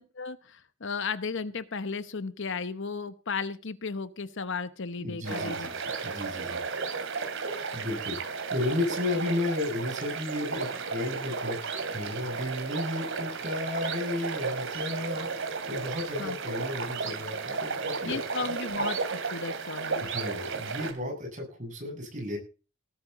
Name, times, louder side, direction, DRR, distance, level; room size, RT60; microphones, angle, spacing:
voice 1, 0.0-5.7 16.2-16.4 18.0-20.0, left 4 dB, 55° left, 13 dB, 0.9 m, -35 dB
voice 2, 5.0-6.6 7.7-18.5 20.0-22.4, left 2 dB, 35° right, 2 dB, 8.0 m, -34 dB
sound 1, 5.2-20.9, right 4 dB, 60° right, 2.8 m, -34 dB
19.0 x 13.0 x 4.1 m, 0.36 s
head